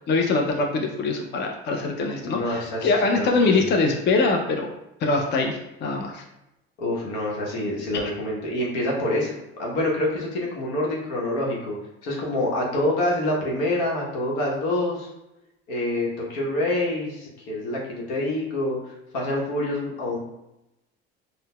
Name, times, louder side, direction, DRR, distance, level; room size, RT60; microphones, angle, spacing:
voice 1, 0.1-4.7 5.0-6.2, left 3 dB, 35° left, 2 dB, 0.5 m, -23 dB
voice 2, 2.2-3.7 6.8-11.7 12.0-15.1 15.7-20.2, left 1 dB, 75° left, -3 dB, 1.0 m, -27 dB
3.9 x 2.1 x 2.2 m, 0.90 s
hypercardioid pair, 65°, 30 cm